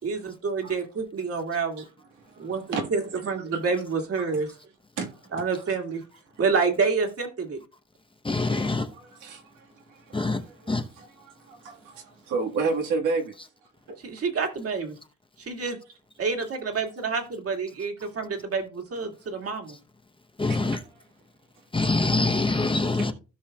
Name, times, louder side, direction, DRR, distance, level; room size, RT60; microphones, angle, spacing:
voice 1, 0.0-1.8 2.4-3.0 3.3-4.5 5.3-6.0 6.4-7.6 14.0-15.0 15.4-15.8 16.2-19.8, right 5 dB, 50° right, 2.2 m, -28 dB
voice 2, 2.2-2.9 3.5-3.6 5.0-5.8 8.6-13.3 13.6-14.0 18.0-18.1 20.5-20.8, right 4 dB, 85° right, 1.8 m, -33 dB
voice 3, 8.2-8.9 10.1-10.4 10.7-10.9 20.4-20.8 21.7-23.1, left 3 dB, 15° left, 0.9 m, -24 dB
16.0 x 5.5 x 2.4 m
cardioid pair, 90°, 30 cm